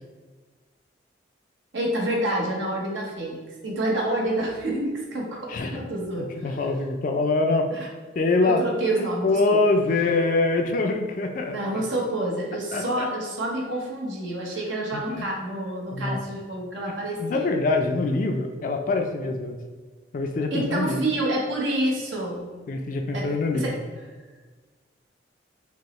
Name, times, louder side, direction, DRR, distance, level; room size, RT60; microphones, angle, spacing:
voice 1, 1.7-6.3 7.7-7.9 8.4-9.6 11.5-17.5 20.5-22.5 23.1-23.8, right 1 dB, 85° right, -2 dB, 0.9 m, -28 dB
voice 2, 6.4-7.7 8.2-8.6 8.9-11.8 12.7-13.1 14.9-15.3 15.9-16.2 17.2-19.6 20.1-21.0 22.7-23.7, left 3 dB, 45° left, 4 dB, 0.3 m, -24 dB
5.2 x 2.0 x 3.0 m, 1.4 s
head